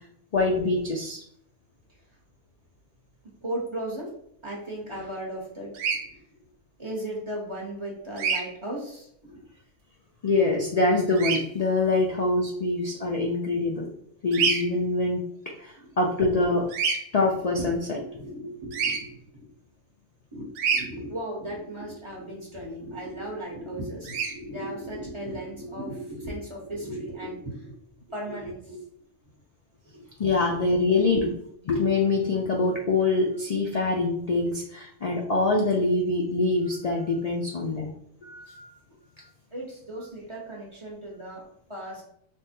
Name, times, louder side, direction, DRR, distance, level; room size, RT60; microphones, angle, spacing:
voice 1, 0.3-1.2 10.2-13.9 14.2-15.2 15.6-16.6 17.1-18.0 30.2-31.3 31.7-37.9 38.2-38.7, left 3 dB, 80° left, -1 dB, 0.3 m, -24 dB
voice 2, 3.4-4.1 4.4-5.7 6.8-9.4 15.8-15.9 17.6-17.7 18.0-19.2 20.3-27.7 28.1-28.8 30.3-30.5 31.1-31.2 39.5-42.0, right 1 dB, 25° right, -4 dB, 0.8 m, -36 dB
Bird vocalization bird call bird song, 5.7-6.0 8.2-8.4 11.2-11.4 14.3-14.6 16.7-17.0 18.7-19.0 20.6-20.8 24.0-24.3, right 5 dB, 75° right, 0.9 m, -25 dB
3.5 x 2.1 x 4.2 m, 0.69 s
omnidirectional pair, 1.3 m